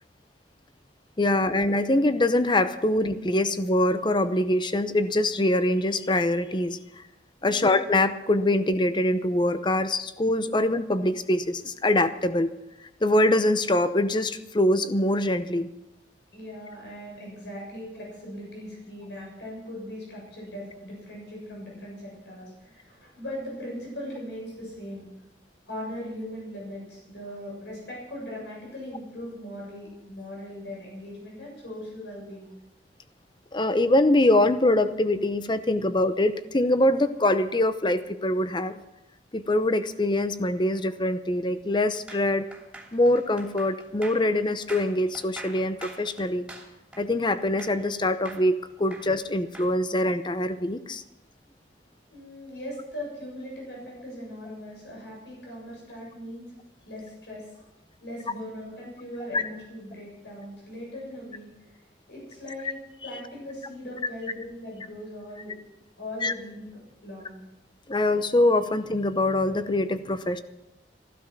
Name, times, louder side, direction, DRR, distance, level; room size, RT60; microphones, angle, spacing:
voice 1, 1.2-6.8 7.4-12.5 13.0-15.7 33.5-38.7 39.3-42.5 42.9-46.4 47.0-51.0 59.3-59.4 66.2-66.3 67.9-70.4, left 1 dB, 25° left, 11 dB, 0.7 m, -24 dB
voice 2, 16.3-25.1 25.7-32.5 52.1-56.5 56.9-57.6 58.0-61.5 62.1-62.8 63.0-65.5 66.0-67.4, left 1 dB, 85° left, -2 dB, 7.4 m, -39 dB
sound 1, 42.1-47.9 48.3-49.7, right 2 dB, 5° right, 2.7 m, -44 dB
15.0 x 13.0 x 6.0 m, 0.93 s
head